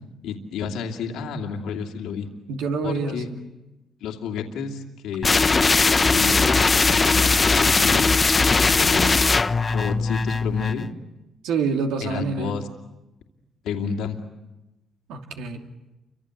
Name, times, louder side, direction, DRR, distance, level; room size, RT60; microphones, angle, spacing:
voice 1, 0.2-2.3 2.8-3.3 4.0-5.6 6.1-8.1 8.8-9.2 9.7-10.9 12.0-12.7 13.6-14.2, left 6 dB, 90° left, 2 dB, 2.6 m, -31 dB
voice 2, 2.5-3.4 11.4-12.6 15.1-15.7, right 5 dB, 90° right, 3 dB, 2.7 m, -27 dB
sound 1, 5.2-10.9, left 4 dB, 30° left, 0.9 m, -19 dB
29.5 x 25.0 x 8.0 m, 1.0 s
cardioid pair, 90°, 0 cm